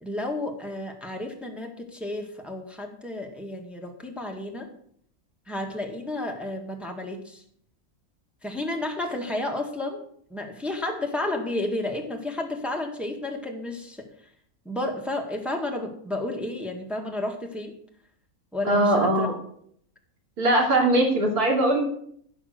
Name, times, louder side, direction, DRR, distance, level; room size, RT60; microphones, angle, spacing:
voice 1, 0.0-4.7 5.5-7.4 8.4-10.0 10.3-14.1 14.7-17.8 18.5-19.3, left 1 dB, ahead, 1 dB, 1.7 m, -31 dB
voice 2, 18.7-19.3 20.4-21.8, right 1 dB, 85° right, 0 dB, 3.6 m, -21 dB
15.0 x 6.4 x 6.6 m, 0.65 s
omnidirectional pair, 1.6 m